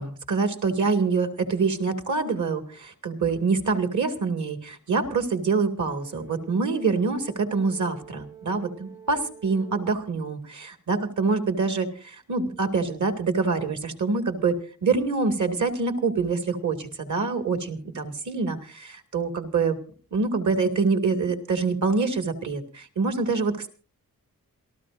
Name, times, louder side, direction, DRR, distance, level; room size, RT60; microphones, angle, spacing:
voice 1, 0.0-19.8 20.1-23.7, right 4 dB, 55° right, 7 dB, 2.1 m, -25 dB
Brass instrument, 5.8-10.0, right 7 dB, 85° right, 4.3 m, -48 dB
27.5 x 13.5 x 2.6 m, 0.38 s
wide cardioid pair, 115°, 35 cm